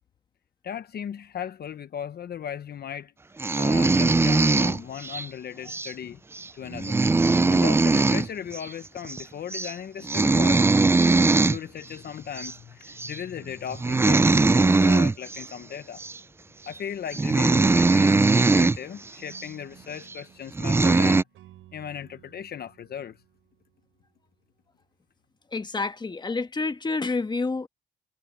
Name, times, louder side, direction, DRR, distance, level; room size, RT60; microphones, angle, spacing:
voice 1, 0.6-3.1 3.6-6.2 6.5-7.0 7.5-10.7 11.4-16.0 16.7-21.2 21.7-23.2, left 8 dB, 55° left, 0.9 m, -37 dB
sound 1, 3.4-5.2 5.7-5.9 6.3-6.4 6.7-8.3 8.5-8.7 9.0-9.2 9.5-9.7 10.0-11.6 12.4-12.5 13.0-13.2 13.7-15.4 16.0-16.2 16.8-16.9 17.1-18.8 19.3-19.4 20.1-20.2 20.5-21.2, right 3 dB, 10° right, 0.3 m, -20 dB
sound 2, 19.2-24.3, right 14 dB, 90° right, 7.0 m, -55 dB
voice 2, 25.5-27.7, left 3 dB, 20° left, 1.3 m, -28 dB
cardioid pair, 90°, 20 cm